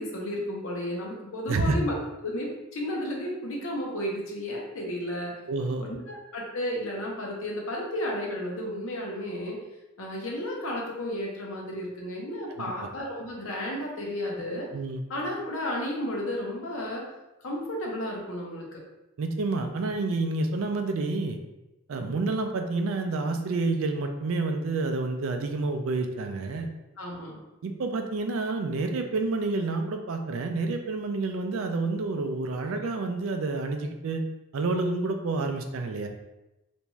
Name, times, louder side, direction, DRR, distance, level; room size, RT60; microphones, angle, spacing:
voice 1, 0.0-5.3 5.8-9.6 10.0-14.7 15.1-17.0 17.4-18.8 27.0-27.3, left 1 dB, 65° left, -2 dB, 0.7 m, -33 dB
voice 2, 5.5-5.9 12.5-12.6 14.7-15.0 19.2-21.4 21.9-26.7 27.6-34.2 34.5-36.1, right 3 dB, 70° right, 5 dB, 0.4 m, -29 dB
2.6 x 2.3 x 3.0 m, 0.96 s
head